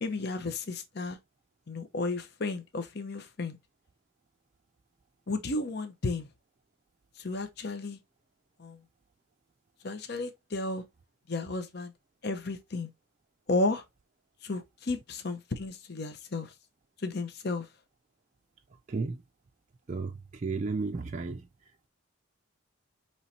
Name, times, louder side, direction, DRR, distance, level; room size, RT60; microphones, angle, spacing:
voice 1, 0.0-1.2 1.7-3.6 5.3-6.3 7.2-8.0 8.6-8.8 9.8-10.8 11.3-11.9 12.2-12.9 13.5-13.8 14.4-16.5 17.0-17.7, left 2 dB, 50° left, 0.7 m, -33 dB
voice 2, 19.9-21.5, right 4 dB, 35° right, 0.4 m, -33 dB
5.5 x 3.1 x 2.7 m
head